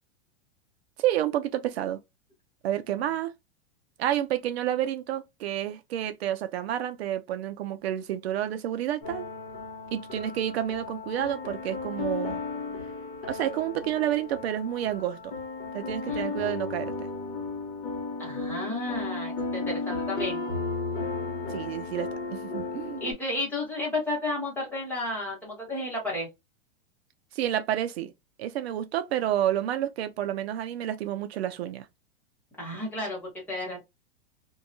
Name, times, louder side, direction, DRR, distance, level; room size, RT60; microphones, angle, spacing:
voice 1, 1.0-2.0 2.6-3.3 4.0-9.3 9.9-12.4 13.3-15.3 15.7-17.1 21.5-23.0 27.3-28.1 28.4-31.9, right 11 dB, 75° right, 0.5 m, -29 dB
sound 1, 9.0-23.1, left 3 dB, 30° left, 0.9 m, -34 dB
voice 2, 18.2-20.4 23.0-26.3 32.6-33.8, left 1 dB, 5° left, 1.0 m, -32 dB
2.7 x 2.2 x 2.5 m
supercardioid pair, 160°, 32 cm